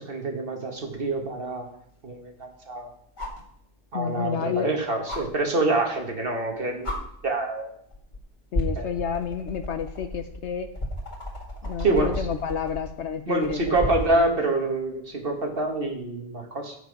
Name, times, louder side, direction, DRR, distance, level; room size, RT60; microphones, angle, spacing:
voice 1, 0.0-1.7 2.0-2.9 3.9-7.0 7.2-7.7 8.7-8.9 11.8-12.3 13.3-16.8, right 2 dB, 45° right, 3 dB, 1.6 m, -26 dB
sound 1, 0.9-1.0 3.2-3.5 5.1-5.2 6.4-6.5 6.8-7.0 7.9-8.2 8.5-14.2 15.9-16.0, left 1 dB, 35° left, 2.1 m, -33 dB
voice 2, 3.9-4.7 8.5-10.7 11.6-14.3, left 7 dB, 65° left, 8 dB, 0.8 m, -30 dB
8.9 x 6.7 x 5.2 m, 0.70 s
omnidirectional pair, 1.4 m